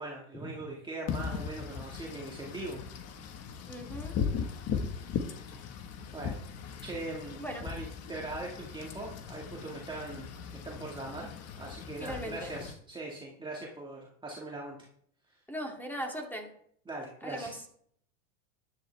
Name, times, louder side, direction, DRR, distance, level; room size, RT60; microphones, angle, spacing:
voice 1, 0.0-2.8 6.1-6.5 6.8-10.3 10.6-14.9 15.3-15.4 16.9-17.6, right 2 dB, 10° right, -3 dB, 1.9 m, -41 dB
Wind / Rain, 1.1-12.7, left 6 dB, 35° left, 1.5 m, -38 dB
voice 2, 3.7-4.2 7.4-7.7 12.0-12.6 15.5-16.5 17.2-17.6, equal, 5° left, 1 dB, 2.5 m, -39 dB
13.0 x 11.0 x 3.4 m, 0.65 s
supercardioid pair, 120°, 41 cm